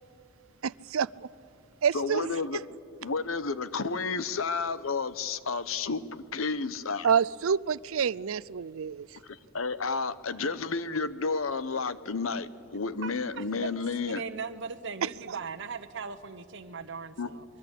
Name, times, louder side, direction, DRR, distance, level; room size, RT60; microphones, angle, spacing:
voice 1, 0.6-1.3 1.8-2.3 7.0-9.1 15.0-15.4, right 7 dB, 80° right, 0.5 m, -28 dB
voice 2, 1.9-2.6 3.0-7.1 9.2-14.2 17.2-17.3, left 4 dB, 75° left, 1.0 m, -31 dB
voice 3, 14.1-17.4, right 5 dB, 60° right, 1.1 m, -38 dB
25.0 x 22.5 x 8.3 m
head